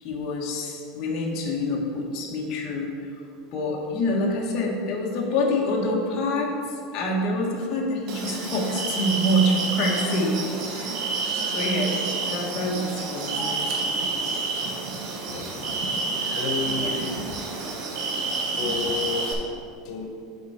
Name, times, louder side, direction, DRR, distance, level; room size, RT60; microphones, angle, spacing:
voice 1, 0.0-2.9 3.5-6.5 6.9-11.0 11.5-11.9 12.2-13.5 16.7-17.1, left 1 dB, 45° left, -2 dB, 1.3 m, -26 dB
sound 1, 8.1-19.3, right 3 dB, 45° right, 1.1 m, -29 dB
voice 2, 15.3-15.8 16.3-17.4 18.6-20.1, left 4 dB, 85° left, 1 dB, 1.1 m, -32 dB
8.2 x 4.5 x 4.7 m, 2.4 s
supercardioid pair, 155°, 0 cm